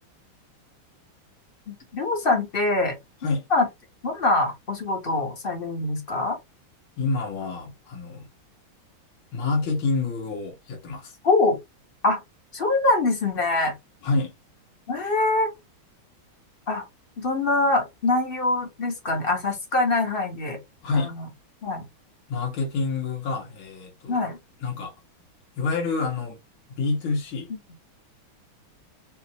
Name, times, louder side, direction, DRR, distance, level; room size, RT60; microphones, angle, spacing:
voice 1, 1.7-3.0 3.5-3.7 4.0-6.4 11.2-11.6 12.0-12.2 12.5-13.7 14.9-15.5 16.7-16.8 17.2-20.6 20.9-21.2 21.6-21.8 24.1-24.4, left 2 dB, 35° left, 1.1 m, -24 dB
voice 2, 7.0-8.3 9.3-11.1 14.0-14.3 20.8-21.2 22.3-24.2 24.6-24.9 25.6-26.4 26.7-27.5, left 3 dB, 75° left, 2.3 m, -27 dB
5.3 x 2.7 x 2.9 m
omnidirectional pair, 2.3 m